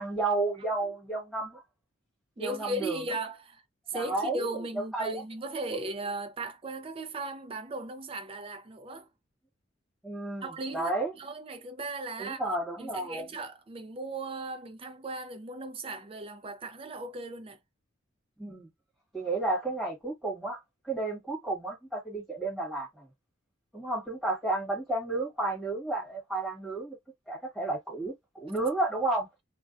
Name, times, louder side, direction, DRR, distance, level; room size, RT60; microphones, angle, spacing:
voice 1, 0.0-1.6 2.4-3.0 3.9-4.5 4.8-5.2 10.0-11.1 12.2-13.2 18.4-18.7 19.1-20.6 20.9-23.1 23.7-27.0 27.3-29.3, right 2 dB, ahead, 1.4 m, -32 dB
voice 2, 2.4-3.6 3.9-9.1 10.4-12.4 12.8-17.6, right 2 dB, 30° right, 0.4 m, -37 dB
2.4 x 2.1 x 2.5 m
head